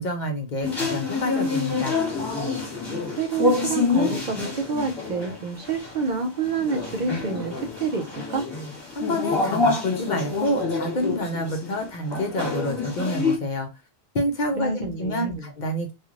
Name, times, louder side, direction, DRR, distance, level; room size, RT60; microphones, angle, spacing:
voice 1, 0.0-2.0 8.9-13.7 14.1-15.9, left 1 dB, 55° left, 0.7 m, -28 dB
sound 1, 0.6-13.4, left 3 dB, 25° left, 1.2 m, -27 dB
voice 2, 3.1-8.5 14.6-15.5, right 5 dB, 55° right, 0.6 m, -28 dB
3.1 x 2.4 x 2.4 m
omnidirectional pair, 1.1 m